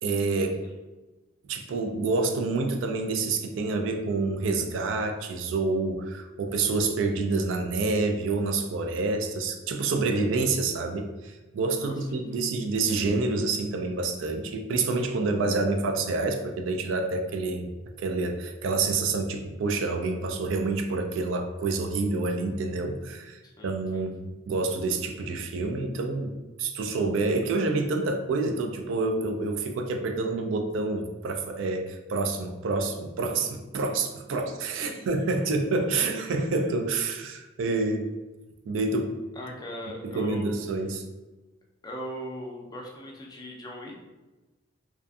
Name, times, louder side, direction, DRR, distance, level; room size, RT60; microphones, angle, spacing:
voice 1, 0.0-0.6 1.5-17.7 18.0-38.1 38.7-39.2 40.0-41.0, right 3 dB, 85° right, 5 dB, 0.3 m, -28 dB
voice 2, 11.8-12.4 23.4-24.1 34.8-35.4 39.4-40.5 41.8-44.0, equal, 20° left, -1 dB, 0.4 m, -40 dB
2.5 x 2.3 x 2.3 m, 1.1 s
head